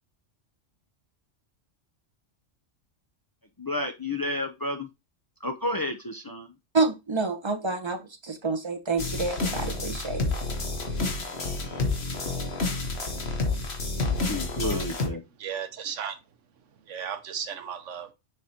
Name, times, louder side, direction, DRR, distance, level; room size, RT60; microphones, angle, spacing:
voice 1, 3.6-4.9 5.4-6.5 14.0-15.2, left 1 dB, 35° left, 0.3 m, -31 dB
voice 2, 6.7-10.2, right 3 dB, 25° right, 0.9 m, -28 dB
sound 1, 9.0-15.1, left 3 dB, 60° left, 1.5 m, -29 dB
voice 3, 15.4-16.2 16.6-18.1, right 7 dB, 80° right, 1.2 m, -35 dB
6.8 x 5.0 x 2.8 m
omnidirectional pair, 1.2 m